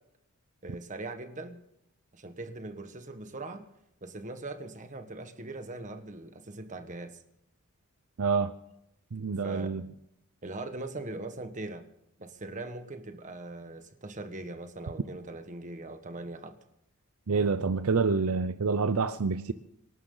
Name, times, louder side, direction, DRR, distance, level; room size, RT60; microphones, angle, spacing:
voice 1, 0.6-1.6 2.1-3.6 4.0-7.2 9.4-9.7 10.4-11.8 12.2-16.5, right 2 dB, 35° right, 7 dB, 1.6 m, -40 dB
voice 2, 8.2-8.5 9.1-9.9 17.3-19.5, right 4 dB, 70° right, 12 dB, 0.6 m, -27 dB
26.0 x 12.0 x 4.0 m, 0.80 s
head